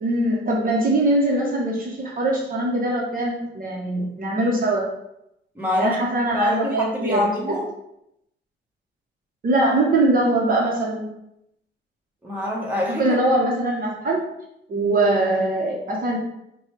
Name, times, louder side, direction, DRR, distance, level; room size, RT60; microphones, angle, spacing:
voice 1, 0.0-4.9 5.7-7.3 9.4-11.1 12.9-14.2 14.7-16.2, right 2 dB, 45° right, -2 dB, 0.9 m, -22 dB
voice 2, 5.5-6.0 6.3-7.7 12.2-13.1, left 1 dB, 10° right, -3 dB, 1.2 m, -25 dB
4.8 x 2.3 x 3.2 m, 0.81 s
cardioid pair, 90°, 20 cm